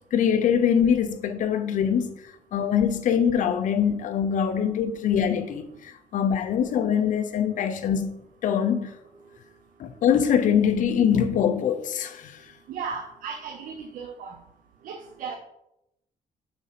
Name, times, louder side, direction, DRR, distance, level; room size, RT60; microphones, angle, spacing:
voice 1, 0.1-2.1 2.5-8.2 8.4-8.9 9.8-12.4, left 8 dB, 70° left, 0.8 m, -23 dB
voice 2, 12.7-14.4 14.8-15.4, right 5 dB, 85° right, 0.8 m, -35 dB
7.0 x 4.3 x 5.8 m
cardioid pair, 120°, 14 cm